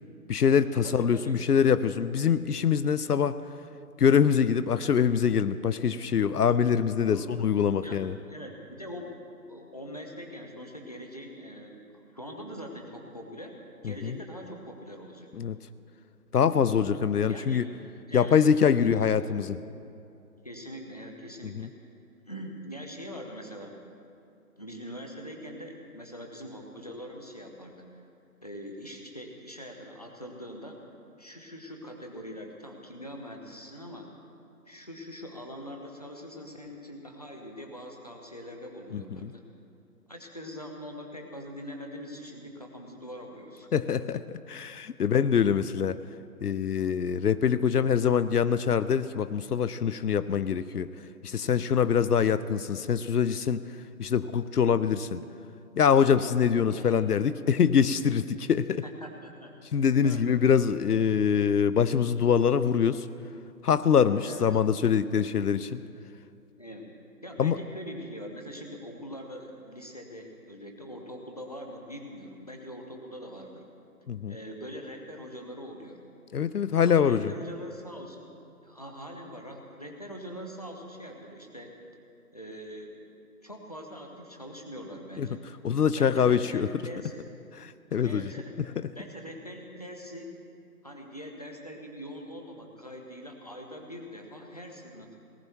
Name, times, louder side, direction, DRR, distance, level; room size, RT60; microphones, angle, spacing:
voice 1, 0.3-3.4 4.0-8.2 13.8-14.2 15.4-15.6 16.3-17.6 18.1-19.6 21.4-21.7 38.9-39.3 43.7-46.0 46.4-50.9 51.2-53.6 54.0-55.2 55.8-58.8 59.7-63.1 63.6-65.8 67.4-67.6 74.1-74.4 76.3-77.3 85.2-85.3 85.6-86.7 87.6-88.3, left 7 dB, 80° left, 15 dB, 0.6 m, -24 dB
voice 2, 0.8-1.4 7.1-7.3 7.8-8.0 8.3-9.1 9.5-11.8 12.1-13.5 13.8-15.3 17.2-17.7 18.1-18.4 18.7-19.2 20.4-21.7 22.3-23.8 24.6-28.0 28.4-30.8 31.2-34.1 34.7-39.4 40.1-43.7 56.7-57.0 58.8-59.6 60.0-60.3 64.2-64.5 66.6-66.9 67.2-73.6 74.3-76.0 76.8-78.3 78.6-81.8 82.3-83.0 83.4-85.4 85.9-87.3 88.0-88.5 88.9-90.3 90.8-95.2, equal, 25° left, 2 dB, 0.9 m, -42 dB
18.5 x 12.0 x 4.6 m, 2.5 s
figure-of-eight pair, 175°, 46 cm